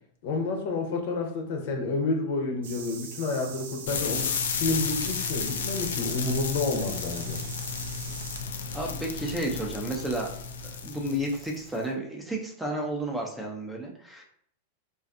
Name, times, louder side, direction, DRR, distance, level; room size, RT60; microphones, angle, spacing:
voice 1, 0.2-4.3 4.6-7.4, left 3 dB, 60° left, 2 dB, 0.6 m, -29 dB
sound 1, 2.6-8.4, right 6 dB, 70° right, 0.5 m, -42 dB
sound 2, 3.9-11.8, left 5 dB, 90° left, 0.3 m, -33 dB
voice 2, 8.7-10.3 10.6-14.2, right 1 dB, 5° right, 0 dB, 0.4 m, -32 dB
2.5 x 2.3 x 2.5 m, 0.63 s
supercardioid pair, 145°, 0 cm